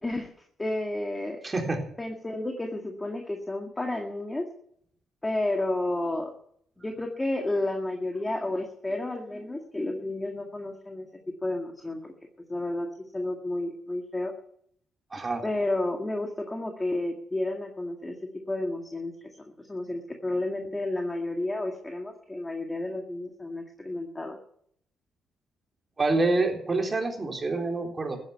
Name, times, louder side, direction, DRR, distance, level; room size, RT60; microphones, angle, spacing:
voice 1, 0.0-1.4 2.0-4.5 5.2-6.3 6.8-11.1 11.4-12.1 12.5-12.9 13.1-14.3 15.4-18.1 18.5-19.1 19.6-24.4, left 2 dB, 15° left, 3 dB, 2.0 m, -31 dB
voice 2, 1.4-1.8 15.1-15.4 26.0-28.2, right 2 dB, 30° right, 2 dB, 3.6 m, -27 dB
14.5 x 10.5 x 7.3 m, 0.67 s
cardioid pair, 90°, 0 cm